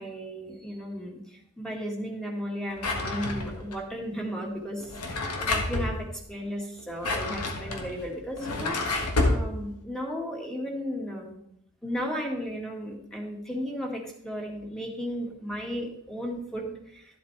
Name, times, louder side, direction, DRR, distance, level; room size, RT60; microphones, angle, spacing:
voice 1, 0.0-11.4 11.8-17.2, equal, 5° left, 0 dB, 1.8 m, -35 dB
Drawer open or close, 2.8-3.7 4.8-5.9 6.8-9.4, left 2 dB, 90° left, 1.5 m, -29 dB
12.5 x 8.0 x 3.4 m, 0.72 s
head